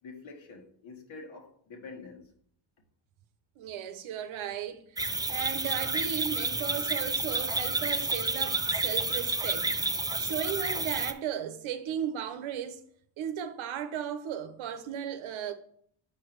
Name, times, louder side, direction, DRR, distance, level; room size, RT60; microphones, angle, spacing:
voice 1, 0.0-2.3, left 4 dB, 70° left, 1.8 m, -46 dB
voice 2, 3.6-4.8 5.3-9.7 10.2-12.8 13.2-15.5, right 9 dB, 75° right, 0.9 m, -35 dB
sound 1, 5.0-11.1, right 3 dB, 10° right, 0.4 m, -30 dB
6.1 x 4.7 x 4.6 m
supercardioid pair, 65°, 49 cm